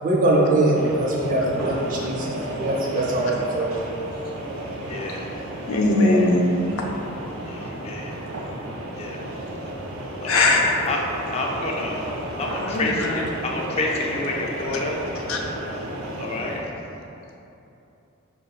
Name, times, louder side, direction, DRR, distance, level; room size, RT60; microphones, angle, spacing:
voice 1, 0.0-3.7, right 1 dB, 40° right, -4 dB, 0.5 m, -22 dB
sound 1, 0.7-16.6, right 1 dB, 85° right, 0.6 m, -33 dB
voice 2, 4.9-5.3 7.5-8.2 9.0-9.2 10.2-10.6 10.9-11.0 11.3-12.0 12.4-15.0 16.2-16.6, left 2 dB, 30° left, -1 dB, 0.4 m, -28 dB
voice 3, 5.7-6.4 6.7-6.9 10.3-10.7 12.6-13.3 15.3-15.4, left 2 dB, 85° left, -1 dB, 0.5 m, -20 dB
4.9 x 2.9 x 2.3 m, 2.9 s
head